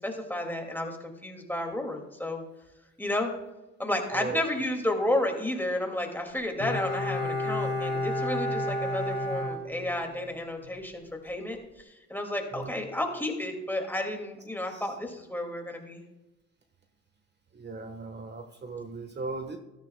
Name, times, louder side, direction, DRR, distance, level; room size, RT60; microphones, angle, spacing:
voice 1, 0.0-2.4 3.0-3.3 3.8-16.0, left 1 dB, 5° left, 2 dB, 2.3 m, -32 dB
voice 2, 4.1-4.5 12.5-12.7 14.7-14.9 17.5-19.6, right 3 dB, 35° right, 5 dB, 1.3 m, -37 dB
Bowed string instrument, 6.6-10.3 10.6-10.7, left 1 dB, 60° left, 2.7 m, -31 dB
13.5 x 13.5 x 2.3 m, 1.0 s
cardioid pair, 90°, 30 cm